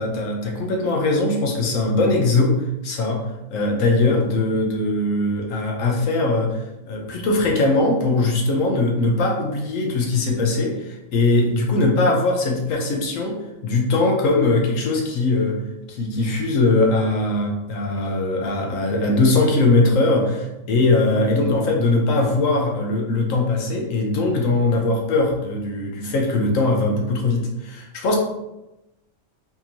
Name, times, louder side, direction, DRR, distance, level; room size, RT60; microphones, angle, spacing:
voice 1, 0.0-15.6 15.9-28.2, left 2 dB, 80° left, 1 dB, 1.1 m, -21 dB
4.2 x 2.6 x 2.9 m, 0.95 s
omnidirectional pair, 1.4 m